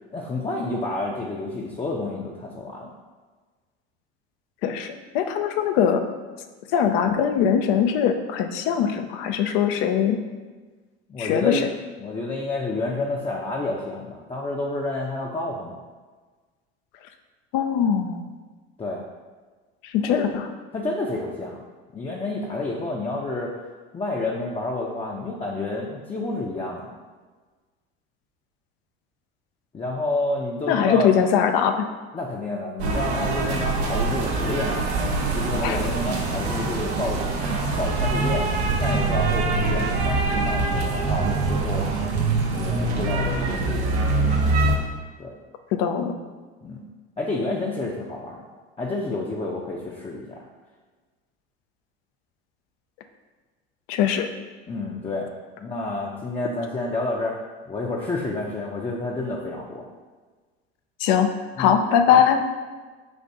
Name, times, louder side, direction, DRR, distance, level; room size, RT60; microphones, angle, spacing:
voice 1, 0.1-2.9 11.1-11.7 12.0-15.8 18.8-19.0 20.0-20.3 20.7-21.6 21.9-23.6 23.9-26.9 29.7-31.1 32.1-34.9 35.3-37.2 37.8-38.5 38.8-41.9 42.5-43.9 45.2-45.4 46.6-46.8 47.2-48.4 48.8-50.4 54.7-55.3 55.6-57.4 57.7-59.9 61.6-61.8 62.1-62.4, left 2 dB, 20° left, -3 dB, 0.6 m, -29 dB
voice 2, 4.6-6.0 6.7-10.2 11.2-11.6 17.5-18.3 19.9-20.5 30.7-31.9 35.6-35.8 45.7-46.1 53.9-54.3 61.0-62.4, left 8 dB, 65° left, 7 dB, 0.5 m, -21 dB
sound 1, 32.8-44.8, right 3 dB, 85° right, 0.8 m, -24 dB
4.2 x 2.5 x 4.7 m, 1.4 s
hypercardioid pair, 70°, 32 cm